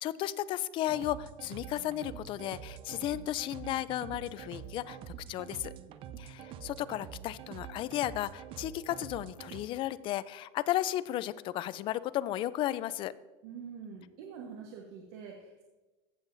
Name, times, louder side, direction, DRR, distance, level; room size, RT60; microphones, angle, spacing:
voice 1, 0.0-5.0 5.3-5.7 6.2-13.1, left 13 dB, 40° left, 17 dB, 0.4 m, -34 dB
sound 1, 0.9-9.6, right 9 dB, 40° right, 0.5 m, -46 dB
voice 2, 13.4-15.6, right 6 dB, 70° right, 1 dB, 1.2 m, -45 dB
15.5 x 7.3 x 2.6 m, 1.2 s
supercardioid pair, 145°, 14 cm